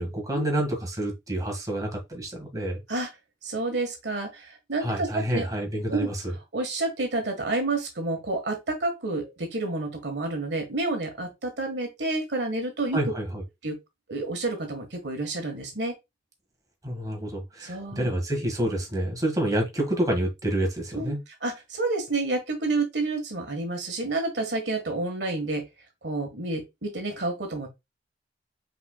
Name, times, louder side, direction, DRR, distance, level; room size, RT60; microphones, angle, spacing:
voice 1, 0.0-2.8 4.8-6.3 12.9-13.4 16.8-21.2, right 1 dB, 20° right, 1.7 m, -28 dB
voice 2, 3.4-5.5 5.9-6.1 6.5-13.0 13.6-13.8 14.1-15.9 17.6-18.1 20.9-25.7 26.0-27.7, right 2 dB, 75° right, 1.5 m, -29 dB
5.4 x 4.2 x 2.2 m
head